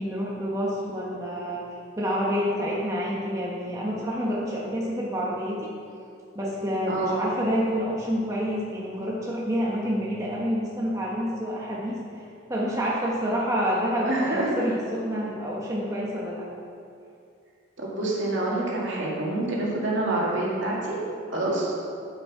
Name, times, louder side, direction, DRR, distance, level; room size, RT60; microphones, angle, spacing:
voice 1, 0.0-1.6 2.0-5.7 6.3-16.4, equal, 15° right, -5 dB, 1.1 m, -28 dB
voice 2, 6.9-7.2 14.1-14.6 17.8-21.0 21.3-21.7, right 2 dB, 65° right, -4 dB, 2.2 m, -27 dB
8.2 x 8.0 x 4.9 m, 2.4 s
head